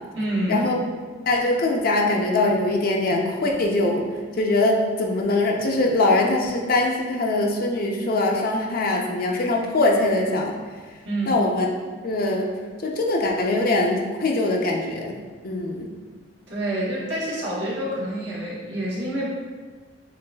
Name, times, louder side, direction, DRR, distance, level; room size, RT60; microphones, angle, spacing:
voice 1, 0.1-0.7 11.0-11.4 16.5-19.3, right 1 dB, 70° right, -5 dB, 1.2 m, -27 dB
voice 2, 1.3-4.1 4.4-10.6 11.3-11.7 12.0-12.5 12.8-15.2 15.4-15.9, left 2 dB, 50° left, 0 dB, 0.5 m, -22 dB
7.1 x 2.5 x 2.2 m, 1.5 s
head